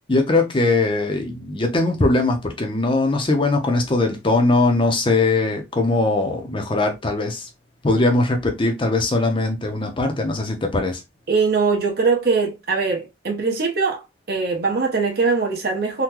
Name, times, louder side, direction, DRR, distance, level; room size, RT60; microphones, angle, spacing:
voice 1, 0.1-7.5 7.8-11.0, left 2 dB, 25° left, 0.7 m, -20 dB
voice 2, 11.3-14.0 14.3-16.0, right 4 dB, 55° right, 1.0 m, -21 dB
3.7 x 2.3 x 2.9 m
head